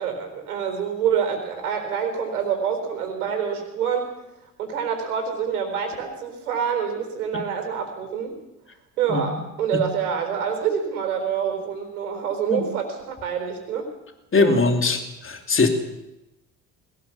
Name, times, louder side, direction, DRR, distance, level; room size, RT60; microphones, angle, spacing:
voice 1, 0.0-4.1 4.6-8.3 9.0-13.9 14.4-14.6, right 7 dB, 85° right, 6 dB, 4.2 m, -26 dB
voice 2, 9.1-9.4 9.7-9.8 12.5-12.7 14.3-15.7, left 3 dB, 30° left, 5 dB, 3.1 m, -21 dB
21.0 x 18.5 x 7.1 m, 0.94 s
hypercardioid pair, 55°, 44 cm